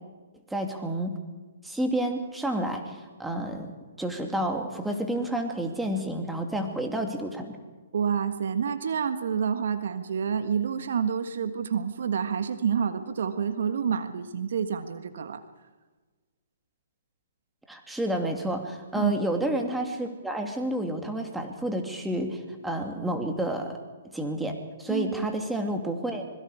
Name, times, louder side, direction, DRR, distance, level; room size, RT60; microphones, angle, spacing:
voice 1, 0.5-1.2 1.6-7.6 17.7-23.8 24.1-26.2, right 1 dB, 5° right, 3 dB, 2.6 m, -30 dB
voice 2, 7.9-15.4 18.9-19.1 24.9-25.3, right 7 dB, 65° right, 9 dB, 1.5 m, -28 dB
25.5 x 22.0 x 5.0 m, 1.3 s
hypercardioid pair, 130°, 0 cm